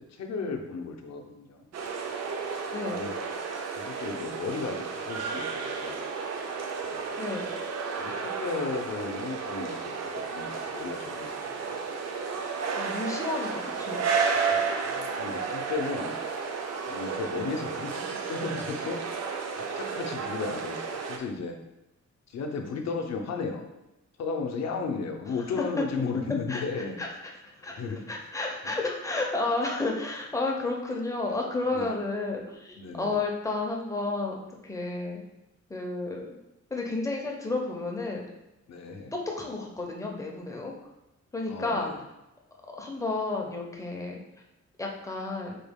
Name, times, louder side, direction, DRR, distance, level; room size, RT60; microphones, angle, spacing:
voice 1, 0.0-1.7 2.9-3.2 3.8-6.0 6.8-7.1 8.0-11.8 14.4-16.2 16.9-19.0 19.5-21.6 22.3-23.6 24.2-27.0 27.6-28.0 28.6-28.8 31.7-31.9 32.8-33.2 38.7-39.1 41.5-42.0, left 4 dB, 60° left, 3 dB, 0.5 m, -35 dB
sound 1, 1.7-21.2, right 5 dB, 60° right, 0.4 m, -32 dB
voice 2, 2.7-3.1 7.2-7.5 12.7-14.0 26.5-26.6 27.0-27.1 27.4-35.2 35.7-36.4 36.7-38.3 39.1-40.9 41.3-41.9 42.8-44.2 44.8-45.6, left 3 dB, 10° left, -1 dB, 0.4 m, -32 dB
3.9 x 2.2 x 3.4 m, 0.91 s
wide cardioid pair, 175°, 30 cm